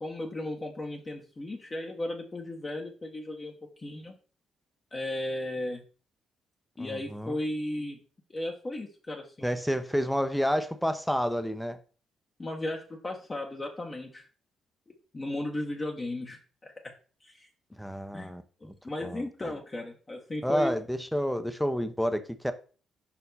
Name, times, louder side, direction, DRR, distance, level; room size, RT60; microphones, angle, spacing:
voice 1, 0.0-3.5 3.8-4.1 4.9-5.8 6.8-8.0 8.3-9.5 12.4-14.2 15.1-16.9 17.2-17.5 18.1-18.3 18.6-20.7, left 1 dB, 25° left, 1.1 m, -35 dB
voice 2, 6.8-7.4 9.4-11.8 17.8-18.7 19.0-19.5 20.4-22.5, equal, ahead, 0.7 m, -30 dB
5.4 x 4.4 x 4.1 m
cardioid pair, 90°, 0 cm